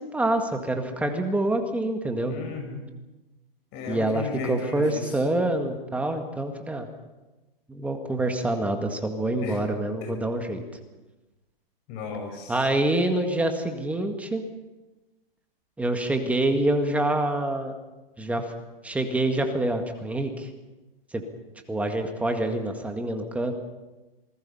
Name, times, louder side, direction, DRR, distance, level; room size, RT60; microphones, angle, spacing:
voice 1, 0.1-2.4 3.9-6.9 7.7-10.6 12.5-14.4 15.8-17.7 18.2-18.4 18.8-20.5 21.1-21.2 21.7-23.5, right 1 dB, 5° right, 5 dB, 1.9 m, -26 dB
voice 2, 2.3-2.8 3.7-5.2 9.4-9.6 10.0-10.1 11.9-12.6, left 3 dB, 35° left, 4 dB, 6.5 m, -34 dB
27.5 x 19.5 x 5.7 m, 1.1 s
hypercardioid pair, 140°, 29 cm